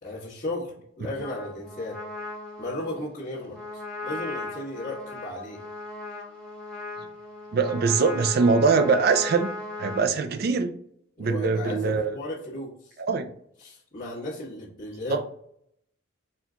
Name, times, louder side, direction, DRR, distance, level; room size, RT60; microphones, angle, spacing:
voice 1, 0.0-2.0 2.6-5.6 11.2-13.0 13.6-15.3, left 1 dB, 40° left, -11 dB, 1.2 m, -35 dB
Trumpet, 1.2-10.1, left 2 dB, 5° left, 1.0 m, -38 dB
voice 2, 7.5-9.5 9.8-10.7 11.2-12.1 13.0-13.3 15.1-15.2, right 4 dB, 45° right, 9 dB, 0.3 m, -22 dB
4.3 x 2.3 x 3.7 m, 0.69 s
head